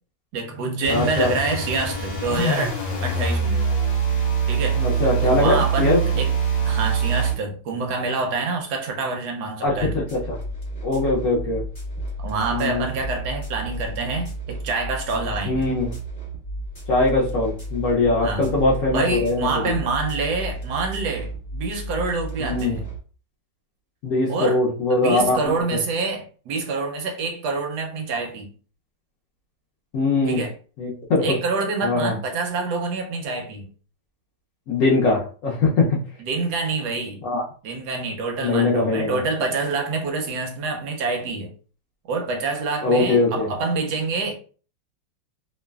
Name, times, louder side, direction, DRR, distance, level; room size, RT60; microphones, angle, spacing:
voice 1, 0.3-2.8 3.0-3.6 4.5-4.8 5.2-6.3 6.6-10.0 12.2-15.7 18.2-18.5 18.9-22.9 24.3-24.6 24.9-28.5 30.2-30.5 31.2-33.7 36.2-37.2 37.6-41.5 42.1-44.4, right 3 dB, 70° right, 1.0 m, -26 dB
sound 1, 0.8-7.4, right 5 dB, 55° left, 1.2 m, -23 dB
voice 2, 0.9-1.3 4.8-6.0 9.6-10.4 10.8-11.6 12.5-12.9 15.5-15.9 16.9-19.5 22.4-22.8 24.0-25.5 29.9-30.4 30.8-31.4 31.8-32.1 34.7-36.0 37.2-37.4 38.4-39.2 42.8-43.5, left 2 dB, 75° left, 0.7 m, -21 dB
sound 2, 9.7-23.0, right 1 dB, 25° left, 0.9 m, -33 dB
3.1 x 2.1 x 2.2 m
omnidirectional pair, 2.0 m